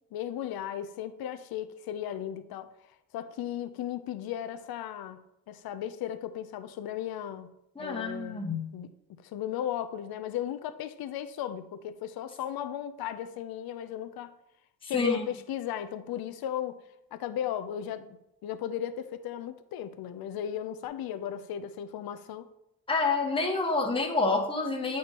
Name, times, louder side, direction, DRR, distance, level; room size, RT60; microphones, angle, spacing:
voice 1, 0.1-2.7 3.1-7.5 7.8-8.4 8.7-8.9 9.2-14.3 14.8-16.8 17.1-18.1 18.4-22.5, left 10 dB, 70° left, 11 dB, 0.5 m, -36 dB
voice 2, 7.8-8.7 14.9-15.3 22.9-25.0, left 3 dB, 15° left, 2 dB, 0.9 m, -28 dB
8.4 x 4.6 x 2.9 m, 0.84 s
cardioid pair, 100°, 37 cm